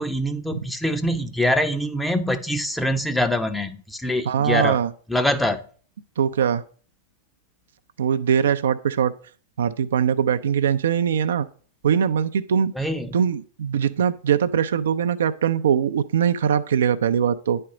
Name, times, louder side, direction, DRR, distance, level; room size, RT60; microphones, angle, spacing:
voice 1, 0.0-4.8 5.1-5.6 12.8-13.2, left 1 dB, 5° left, 8 dB, 0.7 m, -24 dB
voice 2, 4.3-4.9 6.2-6.6 8.0-9.1 9.6-11.5 11.8-12.7 13.1-17.6, right 8 dB, 75° right, 10 dB, 0.4 m, -21 dB
9.5 x 4.4 x 4.9 m, 0.43 s
hypercardioid pair, 105°, 0 cm